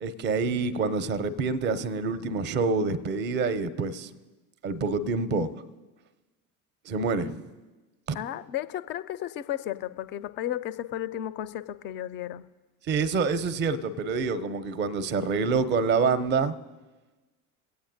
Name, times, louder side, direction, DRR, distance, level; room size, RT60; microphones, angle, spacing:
voice 1, 0.0-4.1 4.6-5.5 6.9-7.4 8.1-8.2 12.9-16.5, right 4 dB, 25° right, 16 dB, 0.5 m, -27 dB
voice 2, 8.1-12.4, left 12 dB, 25° left, 14 dB, 0.3 m, -33 dB
23.0 x 8.7 x 2.6 m, 1.2 s
figure-of-eight pair, 65°, 45 cm